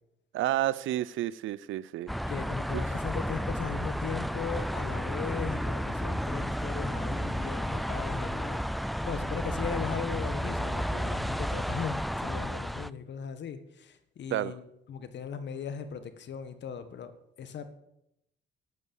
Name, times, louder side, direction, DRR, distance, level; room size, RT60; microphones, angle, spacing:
voice 1, 0.3-2.1 2.7-2.8 14.3-14.5, right 14 dB, 80° right, 20 dB, 0.6 m, -30 dB
sound 1, 2.1-12.9, equal, ahead, 0.4 m, -32 dB
voice 2, 2.3-17.1 17.4-17.7, left 6 dB, 65° left, 11 dB, 1.5 m, -38 dB
12.0 x 8.5 x 7.2 m, 0.82 s
cardioid pair, 90°, 20 cm